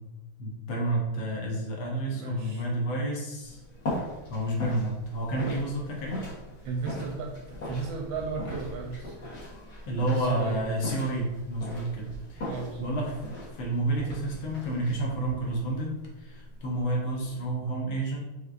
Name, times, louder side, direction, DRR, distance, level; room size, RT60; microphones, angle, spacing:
voice 1, 0.4-3.6 4.3-6.2 9.9-12.5 12.8-13.2 13.5-18.2, right 1 dB, 70° left, -2 dB, 1.6 m, -30 dB
voice 2, 2.1-2.7 6.6-9.1 10.1-10.7 12.4-12.9, right 4 dB, 75° right, 1 dB, 1.2 m, -35 dB
sound 1, 3.4-17.5, left 1 dB, 50° left, 1.9 m, -40 dB
5.2 x 3.3 x 2.4 m, 1.1 s
omnidirectional pair, 2.4 m